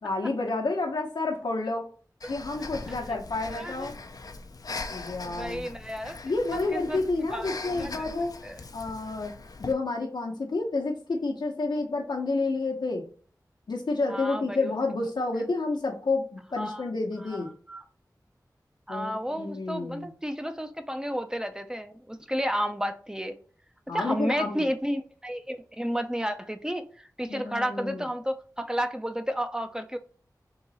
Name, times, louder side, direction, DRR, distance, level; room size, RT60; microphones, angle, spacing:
voice 1, 0.0-1.9 2.3-3.9 4.9-5.6 6.2-8.3 8.7-9.3 9.6-13.0 13.7-17.5 18.9-20.1 23.9-24.7 27.3-28.1, left 3 dB, 90° left, 1 dB, 0.9 m, -30 dB
Breathing, 2.2-9.7, left 3 dB, 60° left, 0.5 m, -41 dB
voice 2, 3.4-3.9 5.2-6.2 6.5-7.0 7.3-7.5 7.8-8.1 8.4-8.6 14.1-14.7 16.6-16.9 17.3-17.8 18.9-23.4 23.9-26.8 27.2-30.0, equal, 10° right, 7 dB, 0.5 m, -32 dB
3.9 x 2.9 x 4.1 m, 0.43 s
wide cardioid pair, 50°, 7 cm